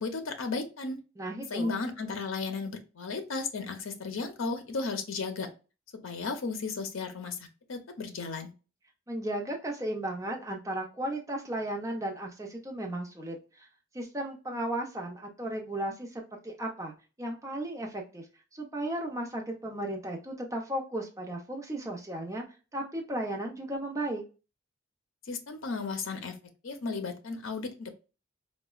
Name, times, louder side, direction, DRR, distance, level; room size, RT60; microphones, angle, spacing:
voice 1, 0.0-1.0 1.5-5.5 6.0-8.5 25.3-26.4 26.6-28.0, left 4 dB, 80° left, 7 dB, 0.6 m, -34 dB
voice 2, 1.2-1.8 9.1-13.7 13.9-18.3 18.5-22.4 22.7-24.2, right 1 dB, 15° right, 0 dB, 0.6 m, -35 dB
4.0 x 2.2 x 2.3 m, 0.33 s
head